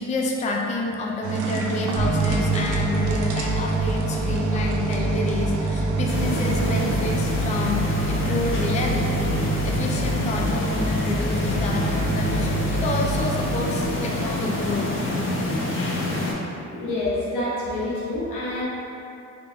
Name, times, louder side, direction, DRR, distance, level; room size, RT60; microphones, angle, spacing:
voice 1, 0.0-9.4 9.6-14.9, left 2 dB, 25° left, -1 dB, 0.4 m, -28 dB
sound 1, 1.2-7.0, right 5 dB, 80° right, 0.5 m, -28 dB
sound 2, 2.0-15.1, right 2 dB, 45° right, 0.7 m, -27 dB
sound 3, 6.1-16.3, left 2 dB, 45° left, 0.7 m, -27 dB
voice 2, 16.7-18.6, left 1 dB, 85° left, -8 dB, 1.1 m, -27 dB
3.7 x 2.2 x 3.4 m, 2.7 s
cardioid pair, 90°, 30 cm